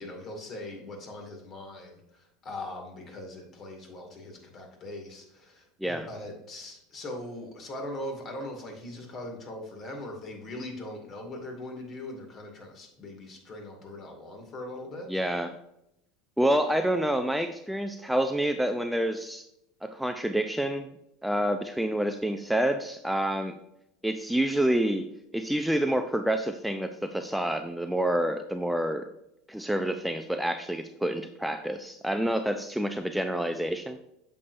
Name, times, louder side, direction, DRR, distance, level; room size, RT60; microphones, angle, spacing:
voice 1, 0.0-15.1, left 1 dB, 40° left, 3 dB, 2.2 m, -40 dB
voice 2, 15.1-15.6 16.4-19.5 19.8-20.9 21.2-23.6 24.0-29.1 29.5-34.0, right 1 dB, ahead, 7 dB, 0.5 m, -28 dB
8.4 x 6.6 x 2.6 m, 0.82 s
hypercardioid pair, 85°, 0 cm